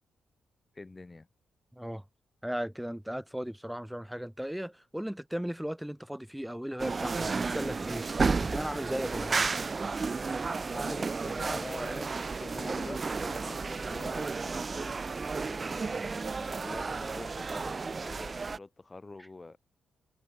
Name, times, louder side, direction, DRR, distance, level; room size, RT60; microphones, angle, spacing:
voice 1, 0.7-1.3 10.7-12.1 12.4-15.0 15.5-19.6, left 3 dB, 25° left, 3.2 m, -45 dB
voice 2, 1.7-2.0 2.4-8.1 8.4-9.5, equal, 5° right, 3.4 m, -36 dB
sound 1, 6.8-18.6, right 4 dB, 40° right, 0.6 m, -32 dB
supercardioid pair, 60°, 0 cm